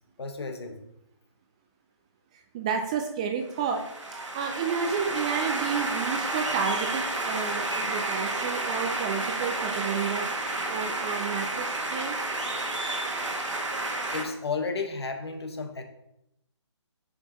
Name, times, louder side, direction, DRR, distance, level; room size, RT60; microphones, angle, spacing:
voice 1, 0.2-0.8 14.1-15.8, left 4 dB, 60° left, 6 dB, 1.3 m, -32 dB
voice 2, 2.3-3.8 4.1-12.2, right 6 dB, 15° right, 4 dB, 0.3 m, -31 dB
sound 1, 3.5-14.2, right 2 dB, 85° right, 1.5 m, -31 dB
9.3 x 5.2 x 2.9 m, 0.82 s
figure-of-eight pair, 145°, 15 cm